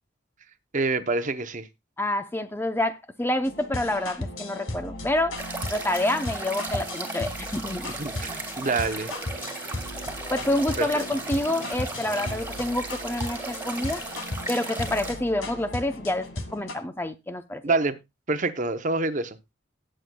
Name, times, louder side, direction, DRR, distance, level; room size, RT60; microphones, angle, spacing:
voice 1, 0.7-1.7 7.9-9.5 10.8-10.9 17.6-18.0 18.3-19.4, right 3 dB, 40° right, 0.8 m, -27 dB
voice 2, 2.0-5.4 5.7-7.9 10.3-14.0 14.5-17.6, left 1 dB, 10° left, 0.6 m, -28 dB
sound 1, 3.4-16.7, left 1 dB, 80° left, 1.8 m, -36 dB
sound 2, 5.4-15.1, right 2 dB, 10° right, 2.3 m, -36 dB
19.0 x 7.7 x 2.2 m
head